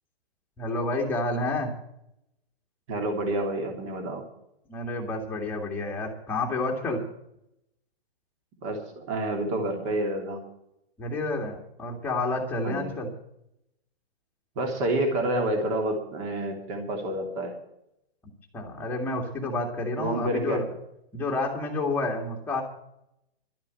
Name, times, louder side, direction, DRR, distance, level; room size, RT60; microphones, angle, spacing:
voice 1, 0.6-1.7 4.7-7.0 11.0-13.1 18.5-20.6 21.1-22.6, left 2 dB, 5° left, -1 dB, 2.1 m, -29 dB
voice 2, 2.9-4.2 8.6-10.4 12.6-12.9 14.5-17.5 20.0-20.6, right 1 dB, 30° right, 4 dB, 3.0 m, -28 dB
12.5 x 7.3 x 9.9 m, 0.79 s
hypercardioid pair, 165°, 31 cm